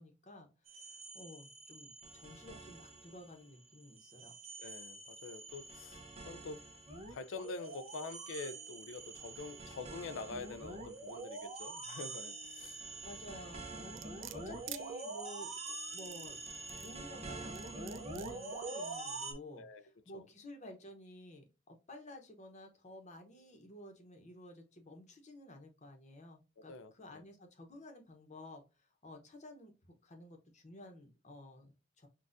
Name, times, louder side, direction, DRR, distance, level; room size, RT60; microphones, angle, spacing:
voice 1, 0.0-4.3 12.8-15.5 15.9-16.4 16.7-29.7 30.0-32.1, left 1 dB, 35° left, 0.9 m, -53 dB
sound 1, 0.7-3.4 3.7-19.3, right 3 dB, 35° right, 0.8 m, -46 dB
voice 2, 4.6-6.7 7.1-12.8 19.6-19.8 20.1-20.2 26.7-27.2, left 4 dB, 75° left, 0.4 m, -46 dB
sound 2, 14.0-14.8 15.8-17.0 17.6-18.3 18.9-19.0, right 14 dB, 65° right, 0.3 m, -48 dB
6.2 x 2.4 x 2.5 m
head